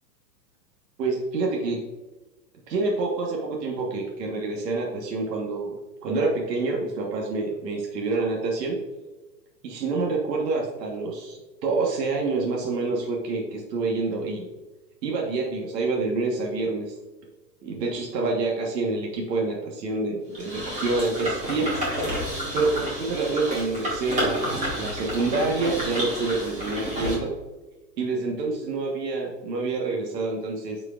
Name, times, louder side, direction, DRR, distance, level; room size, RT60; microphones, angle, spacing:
voice 1, 1.0-1.8 2.7-5.7 6.0-8.8 9.6-14.5 15.0-17.0 17.6-21.7 22.5-27.3 28.0-30.8, right 3 dB, 75° right, -1 dB, 1.5 m, -27 dB
sound 1, 20.3-27.1, equal, 15° right, 1.6 m, -30 dB
9.2 x 4.9 x 2.5 m, 1.2 s
supercardioid pair, 160°, 49 cm